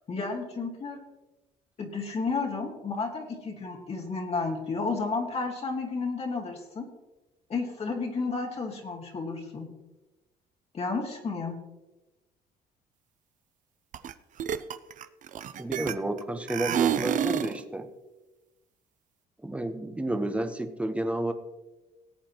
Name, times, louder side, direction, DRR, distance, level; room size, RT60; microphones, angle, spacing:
voice 1, 0.1-1.0 1.8-6.8 7.5-9.7 10.7-11.6, left 4 dB, 40° left, 0 dB, 2.0 m, -32 dB
sound 1, 13.9-14.1 14.4-16.2 16.5-17.6, right 9 dB, 50° right, 0.6 m, -28 dB
voice 2, 15.6-17.9 19.4-21.3, right 1 dB, 5° right, 7 dB, 1.0 m, -31 dB
19.0 x 8.3 x 3.0 m, 1.1 s
cardioid pair, 110°, 17 cm